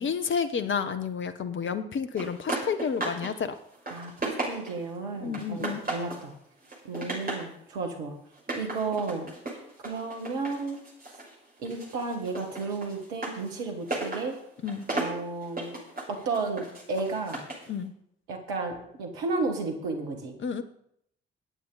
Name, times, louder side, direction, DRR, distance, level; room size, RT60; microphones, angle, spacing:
voice 1, 0.0-3.6 5.2-5.8 14.6-14.9 17.7-17.9 20.4-20.6, left 6 dB, 40° left, 10 dB, 1.1 m, -30 dB
sound 1, 2.2-3.3 3.6-4.9 5.3-6.3 6.6-7.5 8.3-11.3 11.6-17.7, right 2 dB, 30° right, 6.5 m, -35 dB
voice 2, 3.9-6.3 6.8-8.1 8.5-9.3 9.8-10.8 11.6-14.4 14.9-15.8 16.1-17.4 18.3-20.3, right 3 dB, 70° right, 3 dB, 2.1 m, -33 dB
19.5 x 8.8 x 4.1 m, 0.73 s
figure-of-eight pair, 45°, 31 cm